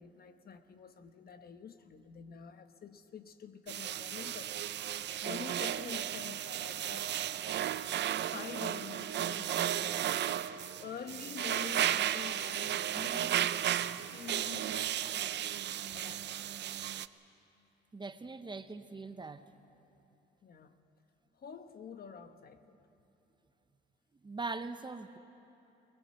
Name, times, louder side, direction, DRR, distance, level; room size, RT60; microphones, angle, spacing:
voice 1, 0.0-7.2 8.2-15.4 15.9-16.4 18.4-18.6 20.4-20.8 21.3-22.8, left 7 dB, 50° left, 1.2 m, -48 dB
sound 1, 3.7-17.1, right 11 dB, 60° right, 0.6 m, -34 dB
voice 2, 17.9-19.4 24.2-25.2, right 3 dB, 25° right, 0.9 m, -41 dB
23.5 x 18.5 x 7.6 m
cardioid pair, 90°, 20 cm